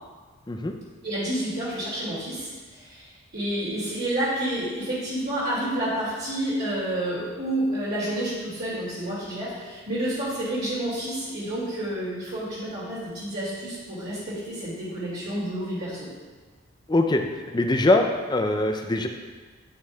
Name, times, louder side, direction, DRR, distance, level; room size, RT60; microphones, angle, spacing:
voice 1, 1.0-16.1, right 1 dB, 50° right, -10 dB, 2.4 m, -29 dB
voice 2, 16.9-17.2 17.5-19.1, left 2 dB, 20° left, 4 dB, 0.5 m, -22 dB
9.3 x 8.9 x 2.4 m, 1.4 s
head